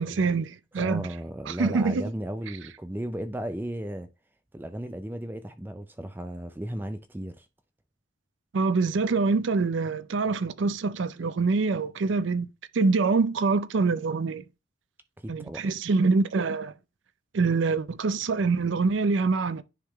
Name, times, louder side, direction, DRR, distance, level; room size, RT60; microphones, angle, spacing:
voice 1, 0.0-1.1 1.5-2.1 8.5-12.5 12.7-14.4 15.3-16.7 17.3-19.6, right 4 dB, 75° right, 0.5 m, -25 dB
voice 2, 0.8-4.1 4.5-7.5 15.2-15.6, right 1 dB, 10° right, 0.4 m, -35 dB
10.0 x 3.7 x 3.4 m
head